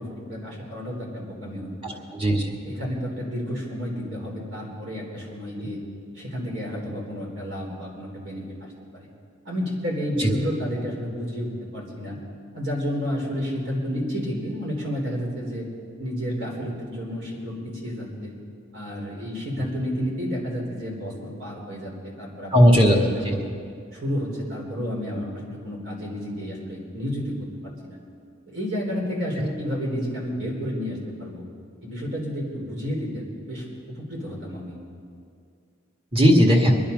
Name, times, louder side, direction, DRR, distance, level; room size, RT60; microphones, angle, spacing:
voice 1, 0.0-2.1 2.6-5.8 6.1-8.4 8.9-9.1 9.5-12.2 12.5-15.7 16.0-18.3 18.7-23.4 23.9-27.4 27.6-28.0 28.5-31.5 31.8-34.8, equal, 65° right, -2 dB, 4.0 m, -31 dB
voice 2, 1.8-2.5 5.6-5.7 10.2-10.3 22.5-23.0 23.3-23.4 36.1-36.8, equal, 25° right, 0 dB, 1.9 m, -17 dB
23.5 x 10.0 x 5.3 m, 2.3 s
head